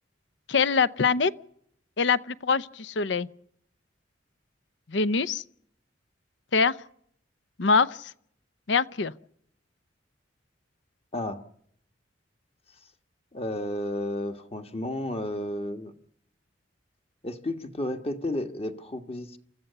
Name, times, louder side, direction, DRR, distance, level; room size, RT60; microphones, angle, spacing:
voice 1, 0.5-1.3 2.0-3.3 4.9-5.4 6.5-6.7 7.6-8.1 8.7-9.1, left 5 dB, 70° left, 0.7 m, -24 dB
voice 2, 11.1-11.4 13.3-15.9 17.2-19.4, left 1 dB, 35° left, 1.5 m, -32 dB
28.0 x 14.5 x 6.8 m
head